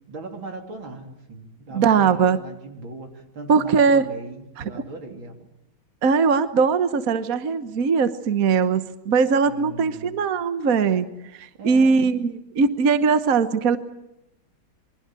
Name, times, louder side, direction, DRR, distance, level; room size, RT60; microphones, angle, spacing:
voice 1, 0.1-5.5 9.5-10.2 11.6-12.3, right 3 dB, 80° right, 3 dB, 4.1 m, -39 dB
voice 2, 1.7-2.4 3.5-4.0 6.0-11.1 11.3-13.8, right 5 dB, 50° right, 10 dB, 1.4 m, -20 dB
27.5 x 23.5 x 7.7 m, 0.88 s
omnidirectional pair, 2.1 m